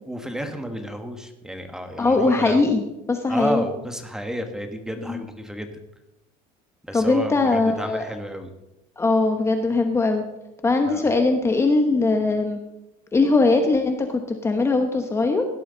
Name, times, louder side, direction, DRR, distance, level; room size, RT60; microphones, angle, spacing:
voice 1, 0.1-2.7 3.3-5.8 6.8-8.5 10.9-11.0, equal, 5° right, 6 dB, 1.4 m, -31 dB
voice 2, 2.0-2.8 3.1-3.7 5.0-5.2 6.9-8.0 9.0-10.2 10.6-12.6 13.1-15.4, left 3 dB, 15° left, 5 dB, 1.2 m, -20 dB
17.0 x 12.0 x 4.0 m, 0.95 s
cardioid pair, 145°, 17 cm